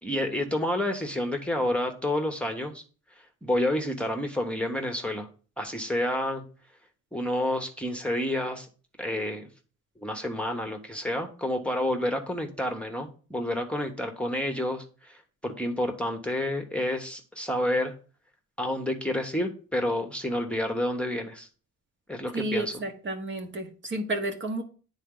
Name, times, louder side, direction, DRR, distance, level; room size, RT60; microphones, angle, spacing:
voice 1, 0.0-2.8 3.4-5.3 5.6-6.4 7.1-8.7 9.0-9.5 10.0-17.9 18.6-21.5 22.1-22.7, left 1 dB, 5° left, 4 dB, 1.0 m, -29 dB
voice 2, 22.3-24.6, right 2 dB, 40° right, 5 dB, 1.1 m, -31 dB
9.1 x 4.0 x 3.8 m, 0.39 s
cardioid pair, 90°, 30 cm